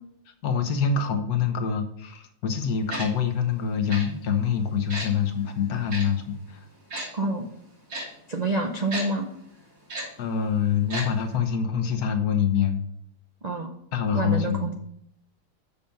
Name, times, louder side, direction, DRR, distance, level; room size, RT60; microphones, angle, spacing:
voice 1, 0.4-6.6 10.2-12.8 13.9-14.7, left 7 dB, 60° left, 6 dB, 1.4 m, -25 dB
Tick-tock, 2.9-3.1 3.9-4.0 4.9-5.1 5.9-6.0 6.9-7.1 7.9-8.0 8.9-9.0 9.9-10.0 10.9-11.0 11.3-11.4, right 1 dB, 65° right, 3.6 m, -32 dB
voice 2, 7.1-7.5 8.3-9.3 13.4-13.7 14.1-14.7, right 2 dB, 85° right, 3 dB, 0.3 m, -27 dB
7.0 x 5.8 x 5.2 m, 0.70 s
omnidirectional pair, 1.9 m